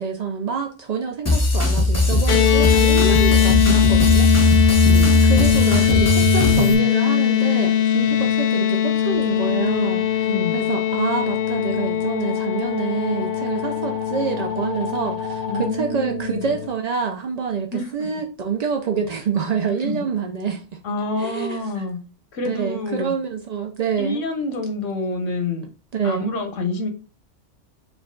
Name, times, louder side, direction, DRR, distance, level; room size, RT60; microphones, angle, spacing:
voice 1, 0.0-4.3 5.3-20.6 21.2-21.8 22.4-24.2 25.9-26.3, right 6 dB, 75° right, 0.3 m, -27 dB
sound 1, 1.3-6.7, left 1 dB, 15° left, 0.7 m, -18 dB
sound 2, 2.3-16.7, left 10 dB, 55° left, 0.6 m, -20 dB
voice 2, 4.8-5.3 10.2-10.7 15.5-16.5 17.7-18.1 19.7-20.1 20.8-22.0 22.3-23.1 24.0-25.7 26.0-26.9, left 2 dB, 90° left, 1.2 m, -27 dB
sound 3, 9.9-15.7, left 3 dB, 60° right, 1.6 m, -36 dB
4.7 x 2.3 x 3.7 m
omnidirectional pair, 1.3 m